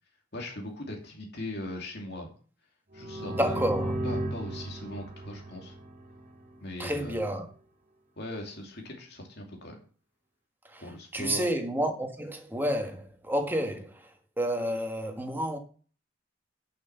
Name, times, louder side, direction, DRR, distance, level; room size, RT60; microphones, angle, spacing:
voice 1, 0.3-2.3 2.9-3.6 4.0-5.8 6.6-7.3 8.2-9.8 10.8-11.5, left 1 dB, 55° left, 2.5 m, -39 dB
sound 1, 2.9-6.6, right 1 dB, 40° right, 2.3 m, -35 dB
voice 2, 3.4-4.0 6.8-7.5 10.7-10.8 11.1-14.0 14.4-15.6, equal, 10° right, 1.6 m, -30 dB
11.0 x 6.0 x 5.9 m
head